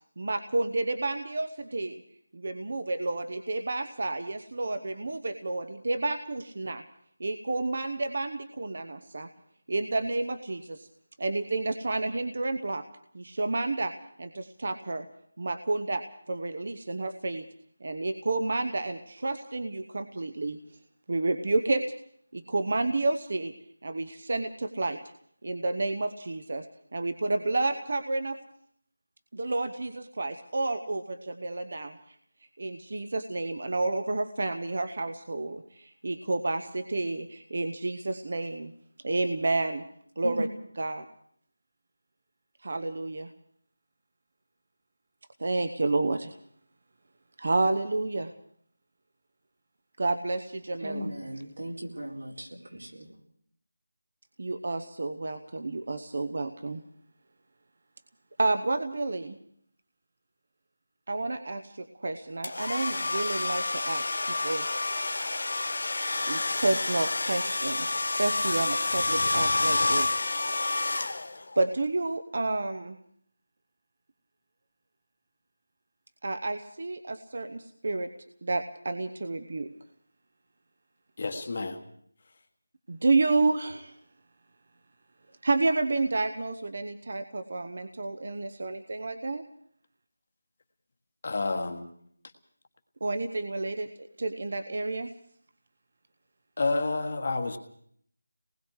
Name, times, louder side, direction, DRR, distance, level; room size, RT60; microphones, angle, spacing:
voice 1, 0.2-2.0 2.3-6.8 7.2-9.3 9.7-10.9 11.2-12.8 13.1-13.9 14.2-15.1 15.4-17.4 17.8-20.6 21.1-21.8 22.3-23.5 23.8-25.0 25.4-26.7 26.9-28.4 29.3-32.2 32.6-38.7 39.0-39.8 40.2-40.5 40.7-41.0 42.6-43.3 45.4-46.3 47.4-48.3 50.0-51.1 54.4-56.8 58.4-59.4 61.1-64.6 66.3-70.4 71.6-73.0 76.2-78.1 78.4-79.7 82.9-83.9 85.4-89.4 93.0-95.1, right 2 dB, 40° right, 7 dB, 0.9 m, -30 dB
voice 2, 50.8-53.1, right 1 dB, 90° right, 0 dB, 4.5 m, -37 dB
sound 1, 62.4-71.6, left 2 dB, 45° left, 1.2 m, -29 dB
voice 3, 81.2-81.8 91.2-91.9 96.6-97.6, left 3 dB, 30° left, 6 dB, 1.5 m, -29 dB
28.0 x 20.0 x 4.8 m, 0.63 s
figure-of-eight pair, 180°, 0 cm